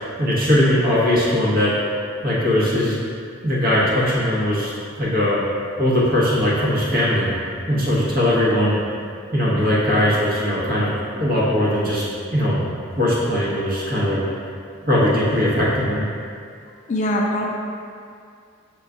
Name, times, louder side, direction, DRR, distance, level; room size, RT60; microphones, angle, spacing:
voice 1, 0.2-1.8 2.2-3.0 3.4-4.7 5.0-5.4 5.8-7.3 7.7-8.8 9.3-12.0 12.3-12.6 12.9-14.2 14.8-16.0, left 1 dB, 45° right, -7 dB, 1.0 m, -19 dB
voice 2, 16.9-17.5, equal, 35° left, 0 dB, 0.3 m, -21 dB
5.5 x 2.3 x 3.7 m, 2.3 s
head